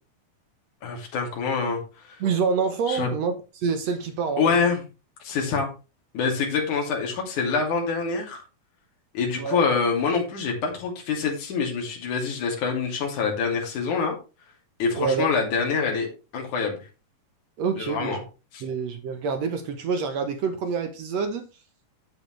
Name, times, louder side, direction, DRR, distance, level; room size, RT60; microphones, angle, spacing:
voice 1, 0.8-1.8 2.1-2.2 2.9-3.1 4.4-4.8 5.2-5.7 6.1-8.4 9.1-14.2 14.8-16.1 16.3-16.8 17.8-18.2 18.5-18.6, left 5 dB, 65° left, 4.2 m, -25 dB
voice 2, 2.2-4.7 9.4-9.6 14.9-15.3 17.6-18.2 18.6-21.5, right 5 dB, 65° right, 2.0 m, -27 dB
10.5 x 8.3 x 3.2 m
omnidirectional pair, 3.8 m